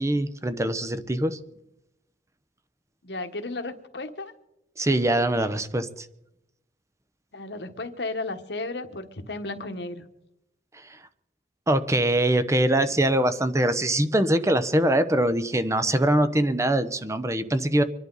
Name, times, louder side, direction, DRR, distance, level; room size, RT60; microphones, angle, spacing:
voice 1, 0.0-1.4 4.8-6.1 11.7-17.8, right 1 dB, 15° right, 11 dB, 0.8 m, -23 dB
voice 2, 3.0-4.3 7.3-10.0, left 2 dB, 70° left, 7 dB, 1.4 m, -34 dB
25.5 x 11.0 x 4.0 m, 0.86 s
head